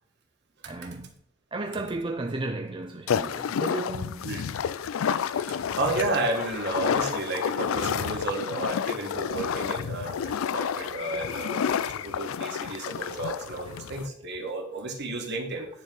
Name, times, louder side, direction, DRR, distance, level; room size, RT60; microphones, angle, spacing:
voice 1, 0.6-1.1 1.5-4.3 13.7-13.8, right 2 dB, 25° right, 0.5 m, -34 dB
sound 1, 3.1-14.1, left 7 dB, 75° left, 0.4 m, -30 dB
voice 2, 5.4-15.7, right 2 dB, 55° right, 1.7 m, -32 dB
10.0 x 4.5 x 6.1 m
head